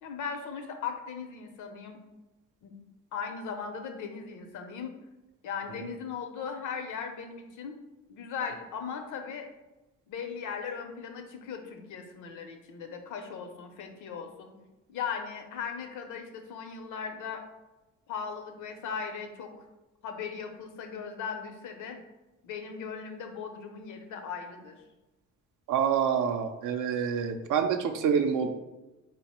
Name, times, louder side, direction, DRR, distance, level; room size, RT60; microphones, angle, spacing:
voice 1, 0.0-2.0 2.6-2.7 3.1-4.9 5.4-7.8 8.1-9.5 10.1-14.5 14.9-17.4 18.1-19.5 20.0-22.0 22.4-24.8, left 6 dB, 80° left, 5 dB, 0.6 m, -38 dB
voice 2, 25.7-28.5, right 7 dB, 85° right, 6 dB, 0.5 m, -27 dB
3.9 x 2.1 x 4.2 m, 1.1 s
cardioid pair, 90°, 30 cm